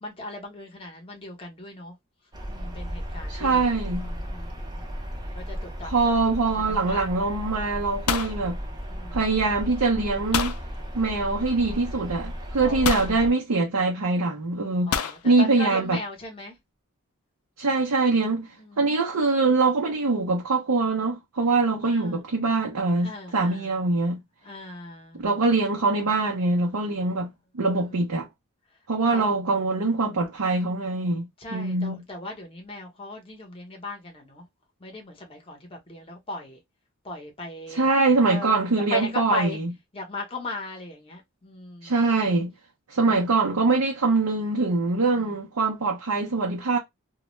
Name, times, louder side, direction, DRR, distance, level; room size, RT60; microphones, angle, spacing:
voice 1, 0.0-1.9 2.5-6.0 6.7-7.1 8.9-9.2 12.6-13.2 14.9-16.5 18.6-18.9 21.8-22.2 23.0-23.7 24.4-25.2 27.7-28.0 29.1-29.3 31.4-34.4 34.8-36.6 37.0-37.8 38.3-39.6 39.9-42.0 43.0-43.3 45.0-45.3, left 2 dB, 25° left, 0.8 m, -38 dB
sound 1, 2.3-13.3, equal, 20° right, 0.5 m, -35 dB
voice 2, 3.3-4.1 5.8-8.6 9.1-10.5 10.9-16.0 17.6-18.5 18.8-24.2 25.2-28.3 28.9-32.0 37.7-39.7 41.8-42.5 42.9-46.8, right 3 dB, 85° right, 0.6 m, -23 dB
sound 2, 8.1-9.3 10.3-10.6 11.8-11.9 12.8-13.2 14.9-15.2, left 7 dB, 85° left, 0.4 m, -28 dB
2.3 x 2.1 x 3.0 m
head